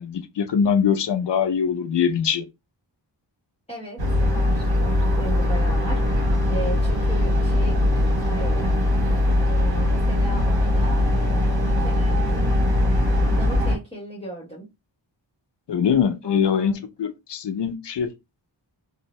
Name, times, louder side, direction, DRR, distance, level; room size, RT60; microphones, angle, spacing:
voice 1, 0.0-2.5 15.7-18.1, left 7 dB, 65° left, 0.6 m, -22 dB
voice 2, 3.7-8.8 9.4-12.7 13.1-14.7 16.2-16.8, right 1 dB, 15° left, 1.0 m, -37 dB
sound 1, 4.0-13.8, left 1 dB, 55° right, 1.0 m, -21 dB
2.6 x 2.0 x 3.0 m
wide cardioid pair, 70°, 46 cm